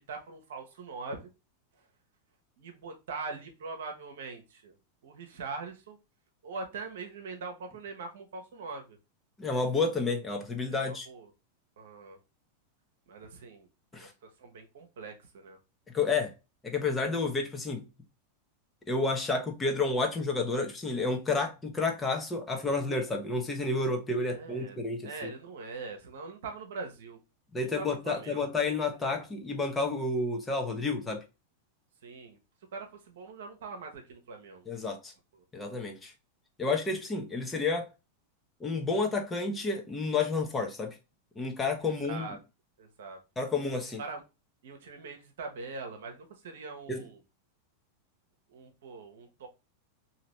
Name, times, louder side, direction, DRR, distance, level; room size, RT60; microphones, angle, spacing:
voice 1, 0.0-1.3 2.6-4.7 5.0-6.0 6.4-9.0 10.7-11.3 11.8-12.2 13.1-13.7 13.9-15.6 24.3-27.2 27.6-28.5 29.0-29.3 32.0-32.4 32.7-34.7 35.3-35.4 42.0-42.4 42.8-43.2 44.0-44.2 44.6-47.2 48.5-49.5, right 4 dB, 60° right, 1.0 m, -42 dB
voice 2, 9.4-11.1 13.9-14.1 15.9-16.3 16.6-17.9 18.9-25.3 27.5-31.2 34.7-35.1 35.5-36.1 36.6-37.9 38.6-41.0 41.4-42.3 43.4-44.0 46.9-47.0, left 3 dB, 15° left, 0.9 m, -30 dB
3.9 x 2.8 x 3.0 m
figure-of-eight pair, 90°, 0 cm